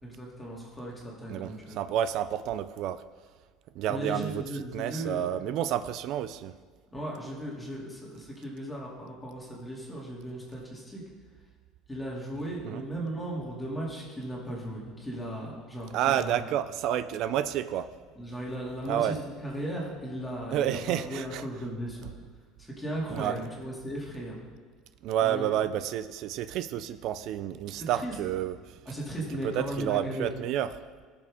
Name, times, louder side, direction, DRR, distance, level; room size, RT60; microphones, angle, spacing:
voice 1, 0.0-1.8 3.9-5.2 6.9-11.0 11.9-16.4 18.2-22.0 22.6-24.4 25.2-25.5 27.8-28.1 28.9-30.3, right 1 dB, 10° left, -4 dB, 2.6 m, -36 dB
voice 2, 1.3-3.0 3.8-4.4 4.7-6.5 12.6-12.8 15.9-17.9 18.9-19.1 20.5-21.4 23.1-23.4 25.0-28.8 29.4-30.7, right 11 dB, 60° right, 13 dB, 0.4 m, -30 dB
17.0 x 7.0 x 3.7 m, 1.5 s
cardioid pair, 125°, 0 cm